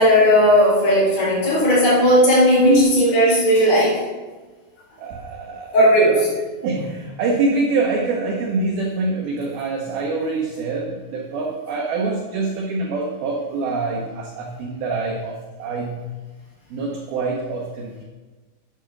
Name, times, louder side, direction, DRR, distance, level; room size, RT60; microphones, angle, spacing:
voice 1, 0.0-4.0 5.7-6.3 6.8-6.9, equal, 35° left, -7 dB, 5.3 m, -15 dB
voice 2, 2.6-2.9 5.0-5.7 6.6-16.0 16.7-18.0, right 3 dB, 75° right, 0 dB, 2.3 m, -25 dB
9.6 x 8.2 x 6.0 m, 1.3 s
omnidirectional pair, 5.7 m